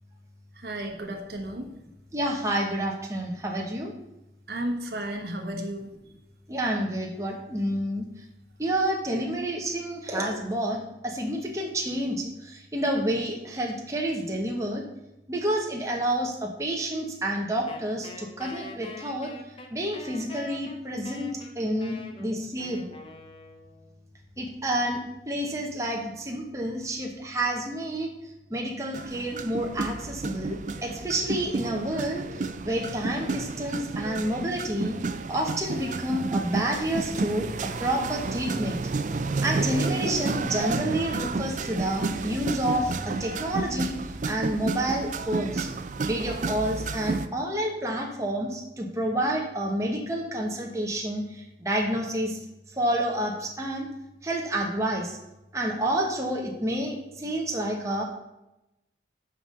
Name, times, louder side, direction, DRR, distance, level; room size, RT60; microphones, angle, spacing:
voice 1, 0.6-1.7 4.5-5.9, right 1 dB, 65° right, 3 dB, 1.1 m, -33 dB
voice 2, 2.1-3.9 6.5-8.0 8.6-14.8 15.3-19.3 19.7-21.3 21.6-22.9 24.4-25.0 25.3-28.1 28.5-32.2 32.6-35.0 35.3-37.5 37.8-38.8 39.4-43.9 44.2-45.7 46.0-52.4 52.8-53.9 54.2-55.2 55.5-58.0, right 1 dB, 15° right, 0 dB, 1.0 m, -29 dB
Wind instrument woodwind instrument, 17.7-24.0, left 2 dB, 30° left, 0.8 m, -44 dB
sound 1, 28.9-47.3, right 3 dB, 45° right, 0.4 m, -31 dB
6.0 x 5.2 x 6.6 m, 0.92 s
head